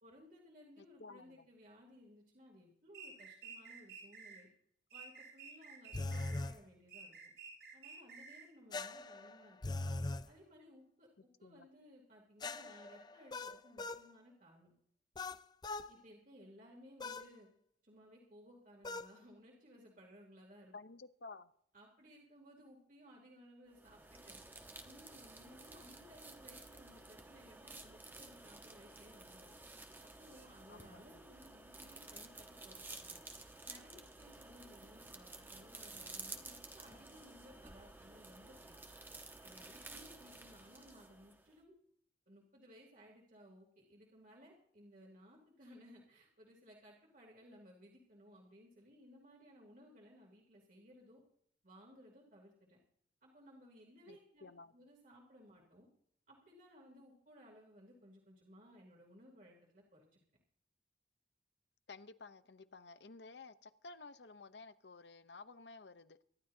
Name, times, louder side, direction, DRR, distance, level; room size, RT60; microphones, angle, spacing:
voice 1, 0.0-4.5 4.9-7.1 7.7-9.8 10.3-14.7 15.9-17.5 17.8-20.7 21.7-24.4 24.8-29.5 30.0-33.2 33.6-38.8 39.4-41.7 42.3-51.2 51.6-52.8 53.2-54.5 54.7-55.9 56.3-60.2, equal, 50° right, 3.1 m, -60 dB
voice 2, 0.8-1.5 11.4-11.7 20.7-21.5 30.7-31.2 54.1-54.7 61.9-66.2, left 3 dB, 80° left, 0.9 m, -54 dB
sound 1, 2.9-4.4 4.9-6.5 6.9-8.5, right 5 dB, 70° right, 5.9 m, -52 dB
sound 2, 5.9-6.6 8.7-10.3 12.4-14.1 15.2-15.9 17.0-17.3 18.8-19.1, left 2 dB, 25° left, 0.4 m, -41 dB
sound 3, 23.7-41.6, right 2 dB, 10° right, 1.2 m, -53 dB
24.5 x 12.5 x 2.8 m
head